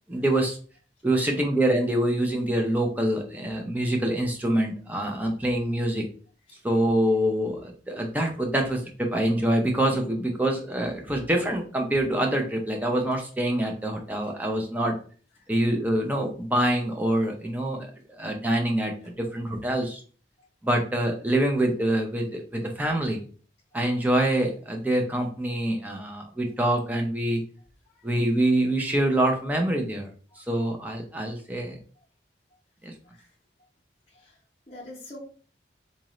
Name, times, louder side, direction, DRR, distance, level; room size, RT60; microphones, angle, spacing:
voice 1, 0.1-0.6 1.0-6.0 6.6-14.9 15.5-17.8 18.2-20.0 20.6-23.2 23.7-27.4 28.0-30.1 30.5-31.8 32.8-32.9, right 1 dB, 10° right, 2 dB, 0.6 m, -25 dB
voice 2, 34.7-35.2, left 1 dB, 35° left, -3 dB, 0.9 m, -45 dB
4.0 x 2.5 x 3.0 m, 0.42 s
head